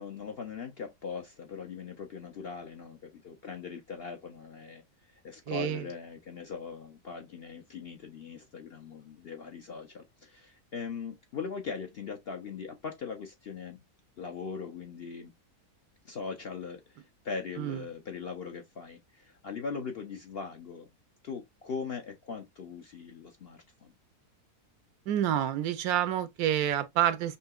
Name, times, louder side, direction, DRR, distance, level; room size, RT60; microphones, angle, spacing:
voice 1, 0.0-4.8 5.2-13.8 14.2-15.3 16.0-20.9 21.2-23.9, left 5 dB, 55° left, 0.7 m, -40 dB
voice 2, 5.5-5.8 17.6-17.8 25.1-27.4, right 11 dB, 75° right, 1.1 m, -28 dB
5.5 x 2.8 x 2.3 m
omnidirectional pair, 1.6 m